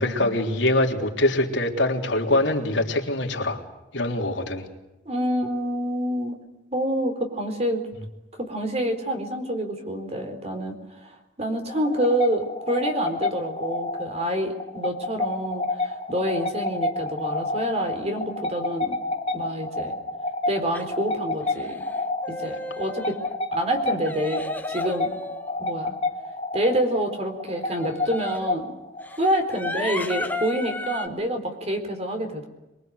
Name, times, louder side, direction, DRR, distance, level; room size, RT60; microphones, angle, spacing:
voice 1, 0.0-3.6 3.9-4.7, left 1 dB, 80° left, 1 dB, 3.5 m, -23 dB
voice 2, 5.1-6.3 6.7-7.8 8.3-19.0 19.3-20.0 20.5-21.8 22.3-23.1 23.5-25.1 25.6-25.9 26.5-28.7 29.2-32.5, equal, 35° right, 5 dB, 4.2 m, -27 dB
sound 1, 11.7-31.1, left 2 dB, 30° left, 1.9 m, -30 dB
sound 2, 20.7-20.9 21.4-21.9 22.2-23.3 24.0-25.8 27.7-28.5 29.0-31.1, left 2 dB, 10° left, 1.3 m, -34 dB
24.0 x 23.5 x 8.0 m, 0.99 s
head